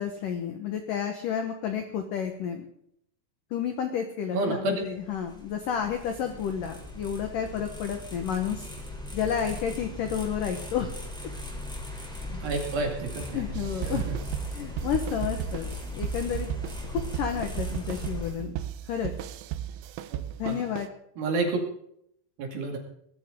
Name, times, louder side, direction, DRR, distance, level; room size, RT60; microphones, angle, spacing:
voice 1, 0.0-2.7 3.5-8.7 9.1-10.9 11.9-12.4 13.3-14.0 14.5-16.5 16.9-18.6 18.9-19.1 20.4-20.9, left 8 dB, 75° left, 5 dB, 2.0 m, -31 dB
voice 2, 4.3-4.8 12.4-13.4 13.9-14.0 20.4-20.6 21.2-21.6 22.4-22.8, right 3 dB, 55° right, 2 dB, 3.7 m, -29 dB
sound 1, 4.9-18.3, left 2 dB, ahead, 2.3 m, -39 dB
sound 2, 13.5-20.9, right 12 dB, 85° right, 3.5 m, -35 dB
21.0 x 13.0 x 3.8 m, 0.71 s
omnidirectional pair, 5.7 m